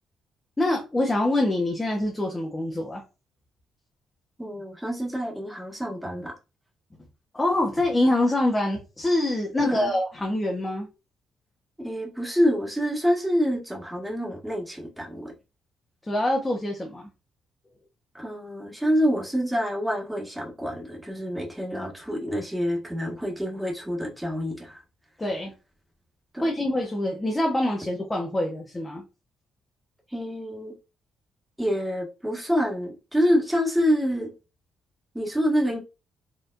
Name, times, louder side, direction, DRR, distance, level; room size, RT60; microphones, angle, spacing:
voice 1, 0.6-3.0 7.3-10.9 16.0-17.1 25.2-25.5 26.4-29.0, left 1 dB, 15° left, 1.1 m, -25 dB
voice 2, 4.4-6.3 9.6-9.9 11.8-15.3 18.1-24.8 26.3-26.4 30.1-30.7 31.6-34.3 35.1-35.8, equal, 5° right, 1.6 m, -27 dB
4.5 x 3.2 x 2.6 m
cardioid pair, 90°, 0 cm